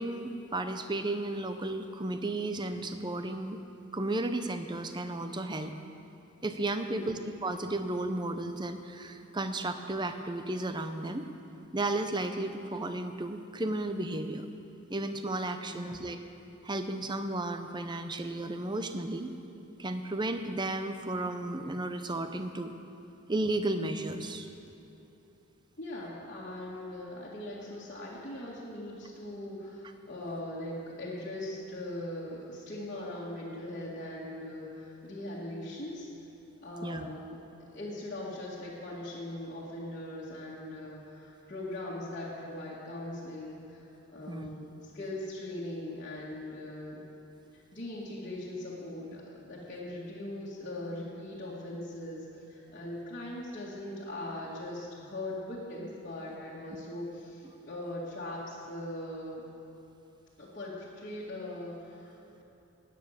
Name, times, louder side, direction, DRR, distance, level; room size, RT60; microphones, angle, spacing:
voice 1, 0.0-3.6 3.9-5.7 6.4-11.3 11.7-14.5 14.9-16.2 16.6-19.3 19.8-22.7 23.3-24.5 36.8-37.1 44.3-44.5, right 2 dB, 20° right, 8 dB, 0.6 m, -33 dB
voice 2, 6.8-7.2 15.6-16.1 25.8-36.1 36.6-37.4 37.7-47.0 47.5-59.4 60.4-62.4, left 1 dB, 40° left, -9 dB, 1.9 m, -40 dB
16.5 x 9.4 x 6.6 m, 3.0 s
head